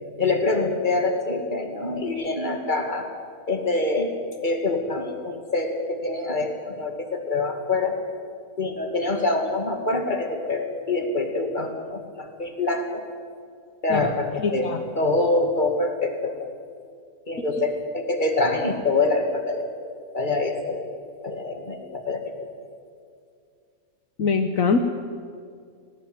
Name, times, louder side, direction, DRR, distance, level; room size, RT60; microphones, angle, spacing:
voice 1, 0.2-3.1 3.5-4.1 4.4-8.0 8.6-13.1 13.8-16.5 17.3-19.7 20.1-20.9 21.2-22.2, left 2 dB, 30° left, 4 dB, 2.5 m, -25 dB
voice 2, 14.4-14.8 24.2-24.8, left 5 dB, 65° left, 6 dB, 1.4 m, -22 dB
19.5 x 18.0 x 9.5 m, 2.2 s
omnidirectional pair, 1.5 m